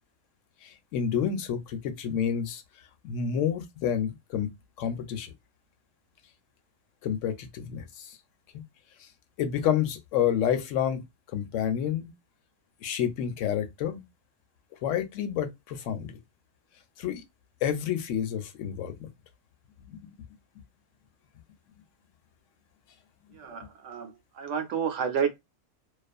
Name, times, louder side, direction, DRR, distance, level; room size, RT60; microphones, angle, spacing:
voice 1, 0.6-2.6 3.0-4.5 4.8-5.3 7.0-8.2 8.5-8.6 9.4-11.0 11.3-12.1 12.8-14.0 14.8-16.1 17.0-17.2 17.6-19.1 19.9-20.0, left 9 dB, 70° left, 0.9 m, -29 dB
voice 2, 23.3-25.4, right 7 dB, 65° right, 0.9 m, -30 dB
2.4 x 2.3 x 2.3 m
omnidirectional pair, 1.4 m